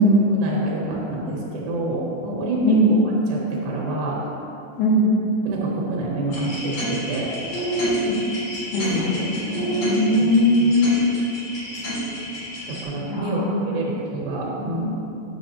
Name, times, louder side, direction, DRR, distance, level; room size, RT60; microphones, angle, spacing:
voice 1, 0.3-4.3 5.5-7.3 8.9-9.2 10.2-10.3 10.6-11.1 12.7-15.0, right 1 dB, 80° right, -4 dB, 2.9 m, -27 dB
voice 2, 2.6-2.9 4.8-5.1 8.1-8.2 8.7-10.9 13.1-13.6, equal, 75° left, -4 dB, 2.6 m, -19 dB
sound 1, 6.3-12.8, equal, 55° left, 2.8 m, -28 dB
9.4 x 6.8 x 2.8 m, 2.7 s
omnidirectional pair, 4.3 m